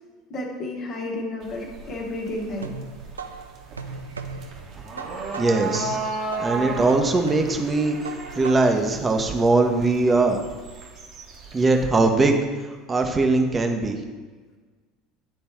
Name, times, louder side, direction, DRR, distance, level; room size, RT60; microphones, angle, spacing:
voice 1, 0.3-2.7, left 1 dB, 50° left, -1 dB, 1.4 m, -31 dB
sound 1, 1.4-11.8, right 3 dB, 50° right, 1.2 m, -35 dB
sound 2, 2.0-8.9, right 4 dB, 85° right, 0.3 m, -38 dB
voice 2, 5.4-6.0 6.4-8.0 8.3-10.4 11.5-12.4 12.9-14.0, right 3 dB, 25° right, 4 dB, 0.9 m, -20 dB
9.4 x 3.3 x 4.4 m, 1.4 s
figure-of-eight pair, 70°, 0 cm